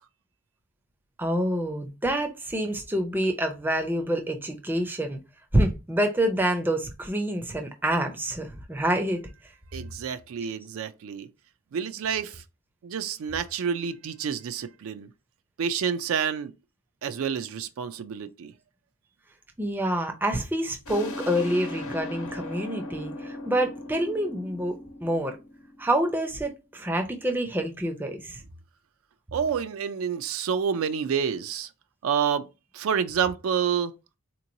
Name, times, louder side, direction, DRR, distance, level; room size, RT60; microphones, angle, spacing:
voice 1, 1.2-5.2 5.5-9.2 19.6-25.4 25.8-28.4, right 1 dB, 10° right, 0.4 m, -27 dB
voice 2, 9.7-11.3 11.7-12.4 12.8-15.1 15.6-16.5 17.0-18.5 29.3-31.7 32.0-32.4 32.7-33.9, right 7 dB, 70° right, 0.3 m, -28 dB
sound 1, 20.8-26.2, left 2 dB, 75° left, 0.9 m, -38 dB
3.7 x 2.9 x 2.6 m
head